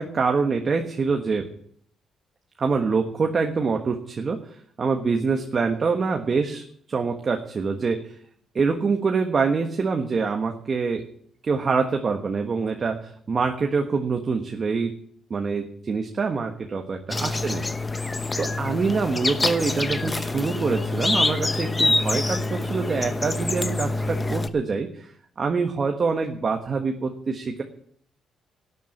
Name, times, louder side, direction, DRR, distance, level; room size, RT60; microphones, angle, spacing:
voice 1, 0.0-1.5 2.6-4.4 4.8-8.1 8.5-11.1 11.4-15.0 15.3-17.6 18.4-25.1 25.4-27.6, right 4 dB, 40° right, 4 dB, 1.4 m, -25 dB
sound 1, 17.1-24.5, left 2 dB, 20° left, 0.9 m, -26 dB
12.0 x 8.4 x 8.7 m, 0.63 s
cardioid pair, 90°, 0 cm